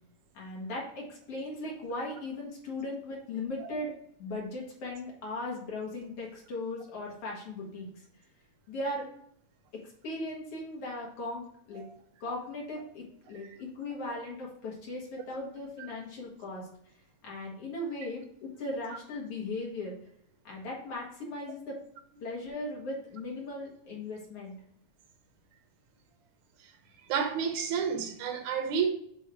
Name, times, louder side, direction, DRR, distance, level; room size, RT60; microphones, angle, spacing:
voice 1, 0.3-3.9 4.2-7.9 8.7-9.1 9.7-11.8 12.2-16.7 17.2-20.0 20.4-21.8 22.2-24.6, left 2 dB, 55° left, 2.6 m, -38 dB
voice 2, 27.1-28.9, right 6 dB, 85° right, 2.4 m, -30 dB
6.9 x 3.5 x 4.5 m
omnidirectional pair, 3.3 m